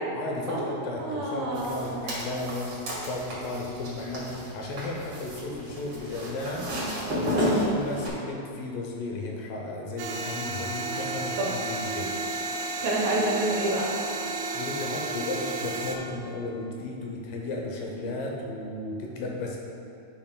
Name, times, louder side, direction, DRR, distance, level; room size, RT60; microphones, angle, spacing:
voice 1, 0.1-2.7 3.0-6.7 7.1-12.1 14.5-19.6, left 2 dB, 75° left, -1 dB, 2.4 m, -34 dB
voice 2, 1.0-2.0 11.4-11.5 12.8-13.9, right 1 dB, 75° right, -4 dB, 2.8 m, -28 dB
sound 1, 1.5-8.1, equal, 50° right, 2.2 m, -32 dB
sound 2, 10.0-16.0, right 3 dB, 90° right, 1.7 m, -32 dB
11.0 x 5.5 x 2.2 m, 2.7 s
omnidirectional pair, 4.2 m